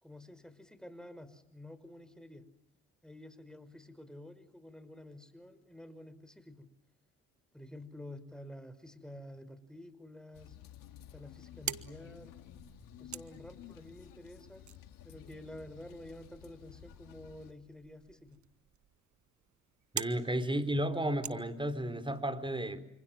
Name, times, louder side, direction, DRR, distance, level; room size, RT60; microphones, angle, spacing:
voice 1, 0.0-2.4 3.0-6.7 7.5-10.6 11.0-12.3 13.0-14.7 15.0-18.4, left 1 dB, ahead, 12 dB, 5.3 m, -50 dB
sound 1, 10.3-17.5, left 11 dB, 80° left, 2.6 m, -53 dB
sound 2, 11.3-22.2, right 10 dB, 60° right, 1.4 m, -47 dB
voice 2, 19.9-22.8, right 1 dB, 15° right, 12 dB, 4.3 m, -33 dB
28.0 x 27.0 x 7.4 m, 0.73 s
supercardioid pair, 60°, 33 cm